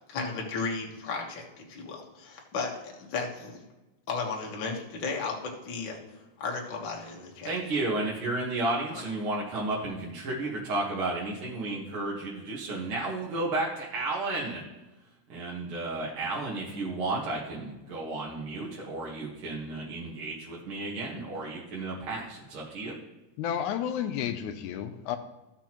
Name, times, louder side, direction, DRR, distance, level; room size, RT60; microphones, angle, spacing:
voice 1, 0.1-3.6 4.1-6.0 6.4-7.5 8.9-9.0, left 4 dB, 50° left, 0 dB, 1.6 m, -34 dB
voice 2, 7.4-14.6 15.3-23.0, right 2 dB, 50° right, -5 dB, 1.9 m, -32 dB
voice 3, 23.4-25.2, left 9 dB, 80° left, 8 dB, 1.9 m, -31 dB
14.5 x 6.1 x 3.0 m, 1.0 s
omnidirectional pair, 3.6 m